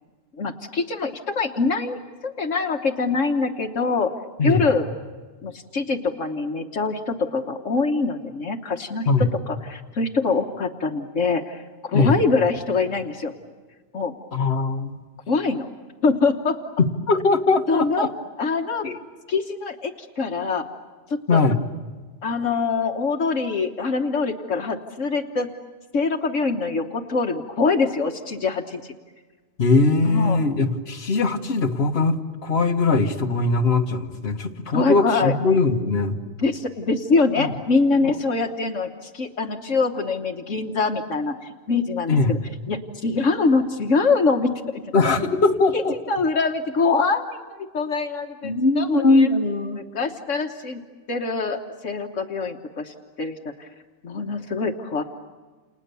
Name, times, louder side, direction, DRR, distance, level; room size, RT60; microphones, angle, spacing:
voice 1, 0.4-4.1 4.4-4.9 5.4-9.1 9.5-13.3 13.9-14.1 15.3-15.7 16.0-16.6 17.7-18.1 18.4-18.8 19.3-20.7 21.1-21.4 22.2-25.5 25.9-28.9 30.0-30.4 34.7-35.3 36.4-42.4 42.7-44.8 45.7-45.8 46.1-49.3 49.7-50.8 51.1-53.7 54.0-55.0, left 4 dB, 70° left, 4 dB, 1.6 m, -24 dB
voice 2, 14.3-15.0 17.1-18.1 18.8-19.0 21.3-21.6 29.6-36.2 37.4-37.5 38.0-38.1 42.1-42.4 44.9-45.9 48.4-49.8, left 3 dB, 55° left, 3 dB, 1.7 m, -20 dB
29.5 x 29.5 x 6.9 m, 1.4 s
omnidirectional pair, 1.3 m